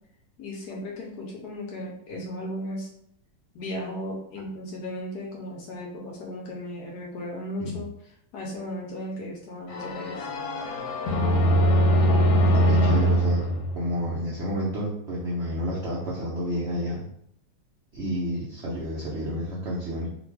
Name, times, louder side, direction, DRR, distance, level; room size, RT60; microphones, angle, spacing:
voice 1, 0.4-2.9 3.5-7.9 8.3-10.3, left 1 dB, 65° left, -2 dB, 1.0 m, -36 dB
sound 1, 9.7-14.5, equal, 90° left, 1.5 m, -22 dB
voice 2, 12.3-13.4 13.7-17.0 17.9-20.1, equal, 90° right, -7 dB, 0.6 m, -30 dB
2.9 x 2.5 x 3.2 m, 0.73 s
omnidirectional pair, 2.2 m